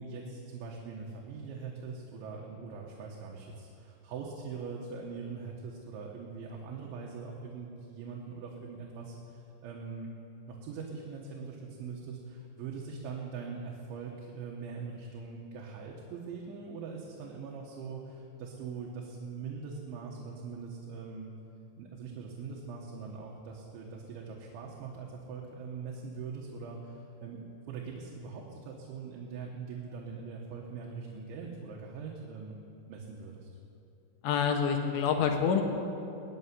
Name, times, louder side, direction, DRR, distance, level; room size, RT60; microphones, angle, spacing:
voice 1, 0.0-10.1 10.5-21.3 21.8-33.5, right 5 dB, 80° right, -1 dB, 3.6 m, -42 dB
voice 2, 34.2-35.6, left 7 dB, 85° left, 4 dB, 3.7 m, -27 dB
20.5 x 7.0 x 9.6 m, 2.7 s
omnidirectional pair, 5.3 m